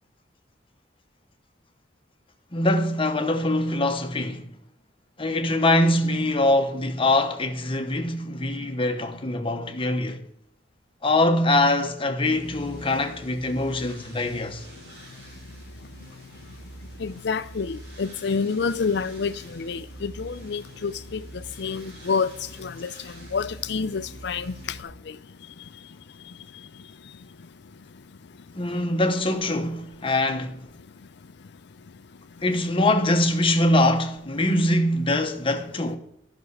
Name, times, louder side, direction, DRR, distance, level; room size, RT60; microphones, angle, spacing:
voice 1, 2.5-4.5 5.2-10.2 11.0-14.6 28.6-30.6 32.4-36.0, left 1 dB, 30° left, 1.0 m, -23 dB
sound 1, 12.3-24.8, right 1 dB, 60° right, 2.8 m, -45 dB
voice 2, 17.0-21.2 21.6-22.3 22.6-22.9 23.3-24.6, left 5 dB, 65° left, 0.5 m, -28 dB
11.5 x 6.2 x 4.7 m
head